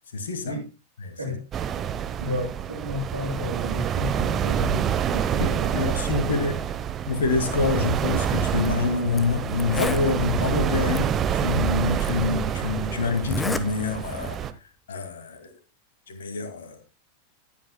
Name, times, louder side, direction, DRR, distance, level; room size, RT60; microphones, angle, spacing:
voice 1, 0.1-0.6 1.0-1.3 5.4-6.5 7.1-14.4 14.9-15.5 16.1-16.8, left 4 dB, 65° left, 2.3 m, -26 dB
voice 2, 1.1-1.5 2.2-5.8 6.2-6.5, left 2 dB, 80° right, 6.5 m, -33 dB
sound 1, 1.5-14.5, right 9 dB, 25° right, 0.9 m, -27 dB
Zipper (clothing), 8.5-8.7 9.2-9.3 9.5-10.1 10.9-11.0 12.0-12.1 13.2-13.7 14.0-14.3, left 2 dB, 10° left, 1.2 m, -29 dB
19.0 x 9.1 x 2.3 m
figure-of-eight pair, 90°, 0 cm